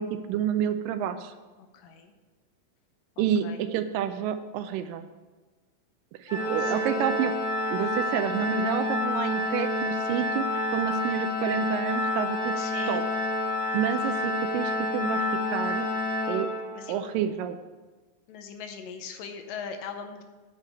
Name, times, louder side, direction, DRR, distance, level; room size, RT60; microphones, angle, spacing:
voice 1, 0.0-1.3 3.2-5.1 6.2-7.4 7.7-12.5 12.9-13.0 13.7-15.2 15.5-15.9 16.3-16.5 16.9-17.6, right 9 dB, 80° right, 9 dB, 2.1 m, -29 dB
voice 2, 1.7-2.1 3.2-3.6 6.6-6.9 12.6-13.0 16.7-17.0 18.3-20.2, left 6 dB, 75° left, 6 dB, 2.4 m, -40 dB
Organ, 6.3-17.0, left 2 dB, 50° left, 1.1 m, -29 dB
9.4 x 4.9 x 7.6 m, 1.3 s
omnidirectional pair, 4.1 m